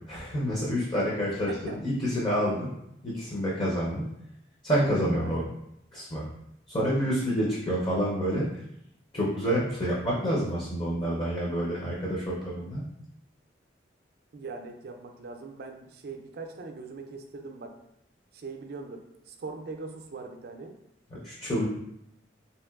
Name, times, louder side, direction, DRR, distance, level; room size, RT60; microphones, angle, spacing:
voice 1, 0.1-2.7 3.0-4.1 4.6-5.4 5.9-6.2 6.7-8.6 9.1-12.8 21.2-21.7, equal, 25° left, -5 dB, 0.5 m, -28 dB
voice 2, 1.5-1.8 5.2-5.5 14.3-17.8 18.3-20.7, right 3 dB, 55° right, 4 dB, 0.4 m, -41 dB
3.1 x 2.8 x 2.3 m, 0.79 s
head